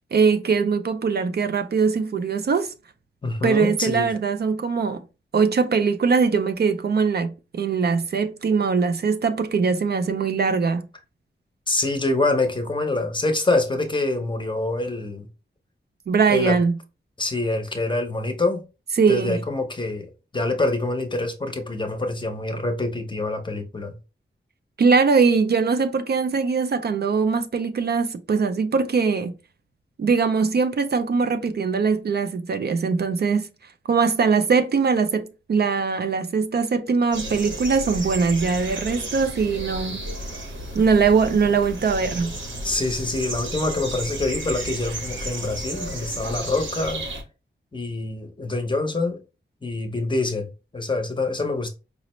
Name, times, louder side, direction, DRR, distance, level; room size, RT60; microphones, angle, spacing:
voice 1, 0.1-2.7 3.4-5.0 5.3-10.9 16.1-16.8 19.0-19.4 24.8-29.3 30.0-33.5 33.9-40.0 40.7-42.3, right 5 dB, 55° right, 0.4 m, -21 dB
voice 2, 3.2-4.1 11.7-15.3 16.3-16.6 17.2-18.6 19.1-20.1 20.3-23.9 42.6-47.0 47.7-49.2 49.6-51.7, left 2 dB, 25° left, 0.7 m, -25 dB
sound 1, 37.1-47.2, right 1 dB, 75° right, 1.0 m, -33 dB
4.9 x 2.0 x 3.0 m
wide cardioid pair, 120°, 20 cm